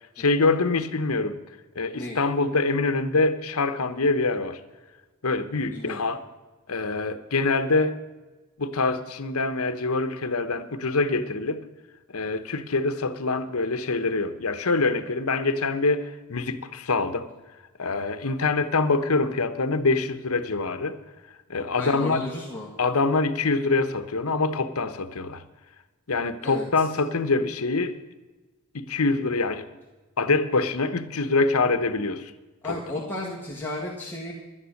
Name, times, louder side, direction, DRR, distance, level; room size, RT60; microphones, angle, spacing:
voice 1, 0.2-1.3 1.7-4.6 5.2-6.2 6.7-8.0 8.6-11.6 12.1-17.3 17.8-21.0 21.5-22.2 22.8-25.4 26.1-27.9 28.7-29.7 30.2-32.3 32.6-32.8, left 3 dB, 75° left, 11 dB, 1.0 m, -25 dB
voice 2, 21.8-22.7 26.4-26.6 32.6-34.3, left 2 dB, 10° left, -5 dB, 1.7 m, -33 dB
11.5 x 10.0 x 6.5 m, 1.2 s
head